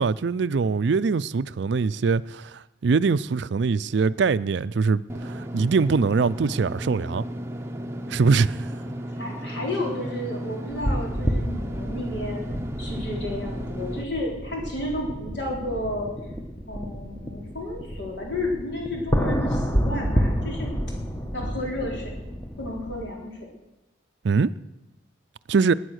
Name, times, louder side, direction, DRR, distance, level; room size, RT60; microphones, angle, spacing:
voice 1, 0.0-7.2 8.1-8.6 24.2-24.5 25.5-25.7, right 4 dB, 65° right, 0.4 m, -23 dB
Engine / Mechanisms, 5.1-14.0, equal, 15° right, 0.8 m, -34 dB
voice 2, 9.1-12.4 12.8-16.1 16.7-20.7 21.3-22.1 22.6-23.4, left 1 dB, 65° left, 4.2 m, -32 dB
sound 1, 10.7-23.0, equal, 10° left, 1.1 m, -29 dB
18.5 x 9.8 x 6.4 m
head